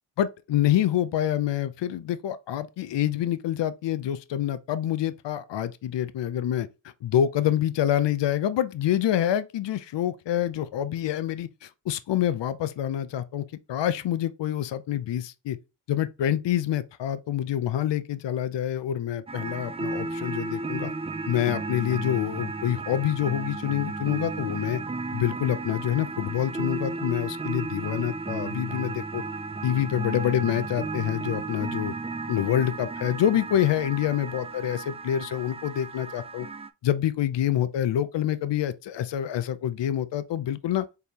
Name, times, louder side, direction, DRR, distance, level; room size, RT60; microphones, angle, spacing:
voice 1, 0.2-6.7 7.0-15.6 15.9-20.9 21.3-24.8 25.1-29.2 29.6-31.9 32.3-36.5 36.8-40.9, left 11 dB, 75° left, 0.5 m, -27 dB
sound 1, 19.3-36.7, right 3 dB, 15° right, 0.3 m, -34 dB
4.5 x 3.4 x 2.8 m
cardioid pair, 60°, 44 cm